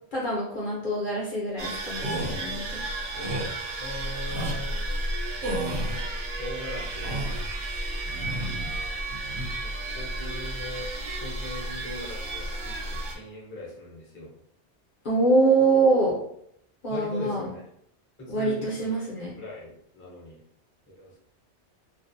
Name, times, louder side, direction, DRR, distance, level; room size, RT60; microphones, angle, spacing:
voice 1, 0.1-2.8 15.0-16.2 16.8-17.5 18.3-19.3, right 3 dB, 55° left, -4 dB, 0.7 m, -24 dB
sound 1, 1.6-13.1, right 1 dB, 60° right, 0.6 m, -33 dB
sound 2, 1.9-2.4 3.1-3.5 4.2-4.6 5.4-6.1 6.8-7.5 8.1-8.7 9.1-9.5, right 1 dB, 80° right, 0.9 m, -33 dB
voice 2, 3.8-4.8 5.5-6.1 6.4-7.2 8.2-9.0 9.6-10.9 11.2-14.3 16.9-17.6 18.2-18.9 19.1-20.4 20.9-21.2, left 1 dB, 15° left, -5 dB, 0.5 m, -40 dB
2.4 x 2.0 x 2.6 m, 0.72 s
omnidirectional pair, 1.2 m